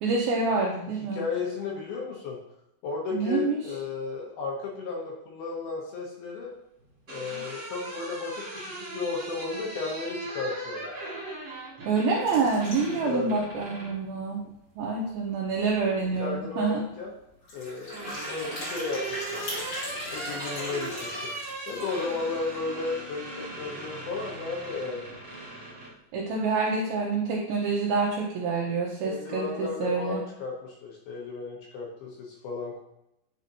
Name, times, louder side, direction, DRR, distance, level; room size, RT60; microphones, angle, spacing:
voice 1, 0.0-1.2 3.1-3.6 11.9-14.4 14.8-16.8 26.1-30.2, right 4 dB, 75° right, -3 dB, 2.3 m, -27 dB
voice 2, 1.1-2.4 2.8-6.5 7.1-8.4 8.8-10.9 13.0-13.3 16.0-17.1 17.5-19.5 20.1-21.3 21.7-25.1 29.0-32.8, left 4 dB, 70° left, -2 dB, 2.5 m, -34 dB
sound 1, 6.8-14.0 15.5-16.2 17.4-25.9, right 2 dB, 45° right, 1.9 m, -39 dB
sound 2, 12.2-13.1 13.6-13.7 13.9-14.0 14.4-14.5 15.8-15.9 16.1-16.4 17.4-22.1, left 1 dB, 35° left, 2.7 m, -39 dB
10.0 x 4.2 x 2.7 m, 0.83 s
omnidirectional pair, 5.3 m